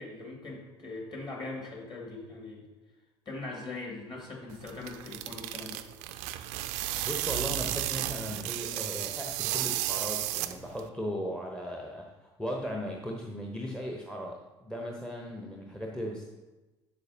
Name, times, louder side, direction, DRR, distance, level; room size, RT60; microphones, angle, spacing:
voice 1, 0.0-2.6 3.3-5.8, left 3 dB, 30° left, -1 dB, 2.1 m, -41 dB
sound 1, 4.5-10.9, right 14 dB, 55° right, 0.4 m, -33 dB
voice 2, 7.0-16.3, equal, 5° left, 0 dB, 0.7 m, -37 dB
8.0 x 6.8 x 2.7 m, 1.1 s
figure-of-eight pair, 60°, 15 cm